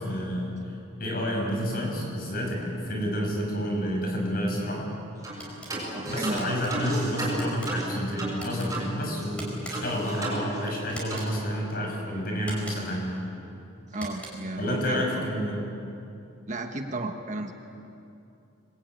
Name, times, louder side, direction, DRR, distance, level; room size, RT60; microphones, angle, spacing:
voice 1, 0.0-4.9 6.1-13.2 14.6-15.6, equal, 45° left, 0 dB, 6.2 m, -29 dB
sound 1, 5.2-5.4 5.7-8.9 9.2-9.3 9.7-10.8 11.1-11.3, right 1 dB, 15° right, 6.7 m, -33 dB
sound 2, 5.4-5.7 6.4-6.7 7.3-7.7 8.3-8.7 9.4-10.0 10.9-11.3 12.4-13.0 13.9-14.5, right 1 dB, 5° left, 5.3 m, -42 dB
voice 2, 5.9-6.6 13.9-15.2 16.5-17.5, right 2 dB, 35° right, 4 dB, 1.4 m, -33 dB
25.5 x 21.5 x 9.3 m, 2.7 s
head